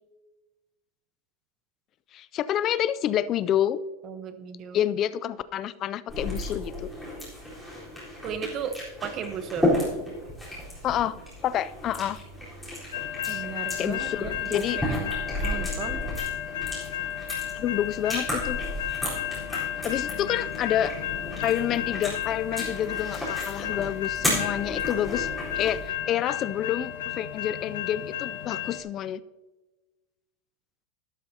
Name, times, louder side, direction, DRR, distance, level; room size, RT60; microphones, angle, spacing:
voice 1, 2.1-3.8 4.7-6.9 10.8-11.2 11.4-12.2 13.3-13.4 13.8-14.8 17.5-18.6 19.8-20.9 21.4-25.3 25.5-29.2, left 11 dB, 30° left, 16 dB, 0.3 m, -28 dB
voice 2, 4.0-4.9 8.2-8.8 9.0-9.7 13.3-15.1 15.4-16.1, right 8 dB, 30° right, 9 dB, 0.9 m, -35 dB
sound 1, 6.1-25.9, left 1 dB, ahead, 4.0 m, -33 dB
sound 2, 12.9-28.8, left 11 dB, 90° left, 0.8 m, -33 dB
12.0 x 12.0 x 2.8 m, 1.1 s
supercardioid pair, 160°, 0 cm